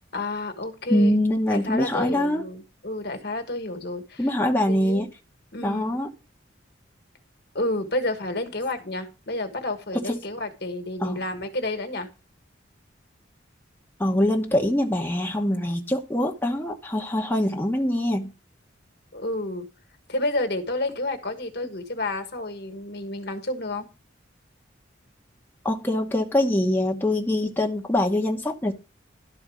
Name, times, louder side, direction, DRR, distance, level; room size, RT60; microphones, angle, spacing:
voice 1, 0.1-1.2 1.5-4.3 4.7-5.1 5.5-5.9 7.5-12.1 19.1-19.7 20.1-23.9, left 2 dB, 55° left, 7 dB, 1.5 m, -30 dB
voice 2, 0.9-2.5 4.2-5.1 5.6-6.1 9.9-10.2 11.0-11.2 14.0-18.3 25.6-28.7, left 1 dB, 10° left, 1 dB, 1.0 m, -23 dB
12.0 x 4.4 x 6.3 m, 0.31 s
head